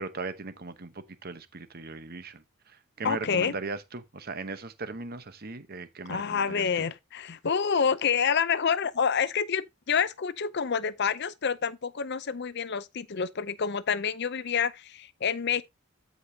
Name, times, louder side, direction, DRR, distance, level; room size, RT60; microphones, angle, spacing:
voice 1, 0.0-6.9, right 3 dB, 45° right, 0.9 m, -38 dB
voice 2, 3.0-3.6 6.1-15.6, left 6 dB, 50° left, 0.6 m, -28 dB
13.0 x 5.2 x 2.8 m
head